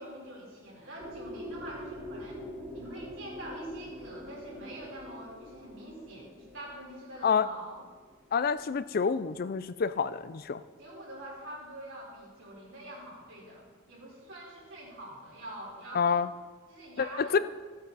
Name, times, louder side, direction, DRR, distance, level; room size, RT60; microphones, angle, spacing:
voice 1, 0.0-2.4 2.7-7.8 10.8-16.2 16.7-17.4, right 1 dB, 65° right, -4 dB, 4.0 m, -45 dB
sound 1, 1.0-8.8, left 1 dB, 25° right, 2.4 m, -45 dB
voice 2, 8.3-10.6 15.9-16.3 17.0-17.4, left 6 dB, 45° left, 14 dB, 0.4 m, -28 dB
15.0 x 8.8 x 4.1 m, 1.4 s
head